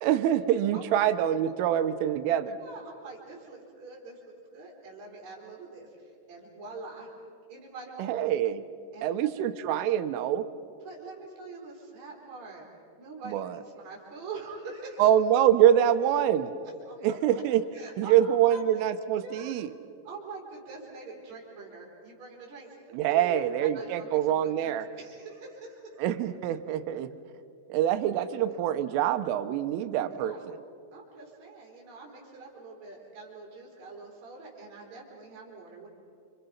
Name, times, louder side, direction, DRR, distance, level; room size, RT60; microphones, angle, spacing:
voice 1, 0.0-2.6 8.0-8.6 9.0-10.5 13.3-13.6 15.0-16.5 17.0-17.6 18.0-19.7 22.9-24.9 26.0-27.1 27.7-30.6, right 11 dB, 85° right, 10 dB, 3.4 m, -25 dB
voice 2, 0.7-1.1 2.4-7.1 7.5-8.0 8.9-9.3 10.8-12.7 13.0-15.1 16.9-17.4 17.7-18.6 19.2-19.5 20.0-26.0 30.1-30.4 30.9-35.9, right 3 dB, 35° right, -3 dB, 4.9 m, -44 dB
30.0 x 26.5 x 5.7 m, 2.5 s
omnidirectional pair, 5.8 m